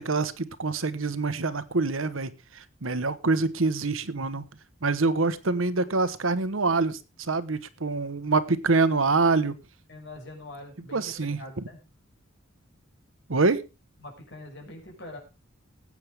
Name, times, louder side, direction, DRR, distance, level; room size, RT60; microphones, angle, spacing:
voice 1, 0.0-4.4 4.8-9.5 10.9-11.4 13.3-13.6, right 3 dB, 90° right, 1.1 m, -25 dB
voice 2, 9.9-11.8 14.0-15.2, left 2 dB, 60° left, 5.8 m, -43 dB
20.0 x 8.6 x 3.5 m
head